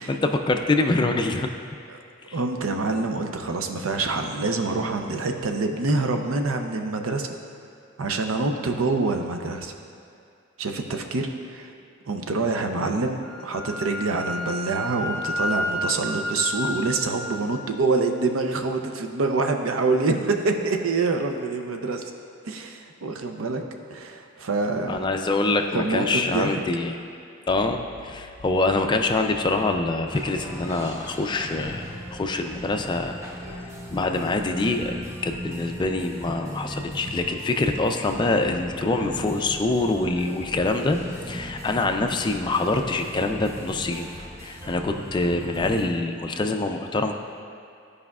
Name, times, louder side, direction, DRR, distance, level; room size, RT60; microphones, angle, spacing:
voice 1, 0.0-1.5 2.3-2.4 24.9-26.9 27.5-31.9 32.1-33.2 33.9-41.0 41.3-44.1 44.4-47.1, left 2 dB, 20° left, 5 dB, 0.3 m, -25 dB
voice 2, 2.3-7.4 8.0-9.7 10.6-11.7 12.1-22.0 22.4-23.6 23.9-25.0 25.7-26.6, right 3 dB, 85° right, 5 dB, 0.6 m, -26 dB
Wind instrument woodwind instrument, 13.2-17.4, left 1 dB, ahead, 1.3 m, -30 dB
sound 1, 30.1-45.9, equal, 15° right, 0.7 m, -38 dB
13.0 x 4.9 x 2.4 m, 2.4 s
head